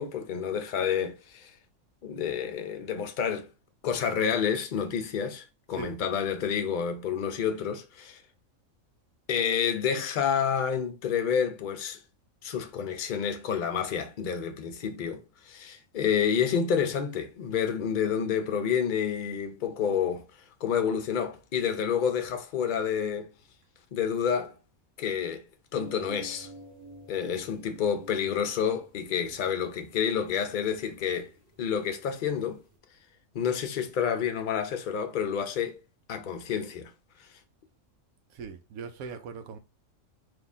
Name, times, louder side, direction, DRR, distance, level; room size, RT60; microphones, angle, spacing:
voice 1, 0.0-1.5 2.0-3.5 3.8-8.2 9.3-12.0 12.4-20.3 20.6-23.3 23.9-24.5 25.0-25.4 25.7-26.5 27.1-31.3 31.6-32.6 33.3-35.8 36.1-36.9 37.2-37.3, left 7 dB, 50° left, 0.6 m, -29 dB
sound 1, 25.7-32.8, right 1 dB, 50° right, 1.6 m, -50 dB
voice 2, 38.3-39.6, right 5 dB, 90° right, 1.1 m, -40 dB
4.1 x 2.9 x 3.5 m
omnidirectional pair, 1.5 m